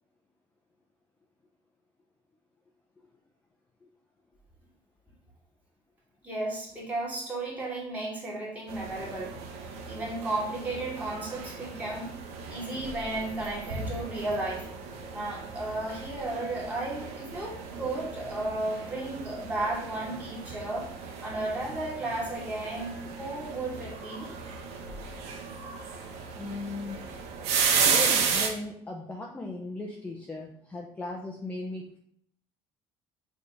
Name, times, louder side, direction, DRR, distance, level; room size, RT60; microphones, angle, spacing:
voice 1, 6.2-12.2 12.5-14.7 15.1-20.9 21.2-24.3, right 2 dB, 15° right, -5 dB, 2.4 m, -34 dB
sound 1, 8.7-28.5, right 5 dB, 90° right, 1.3 m, -34 dB
voice 2, 26.4-27.0 27.8-32.0, left 2 dB, 15° left, -1 dB, 0.7 m, -37 dB
6.8 x 3.6 x 5.4 m, 0.65 s
cardioid pair, 155°, 11 cm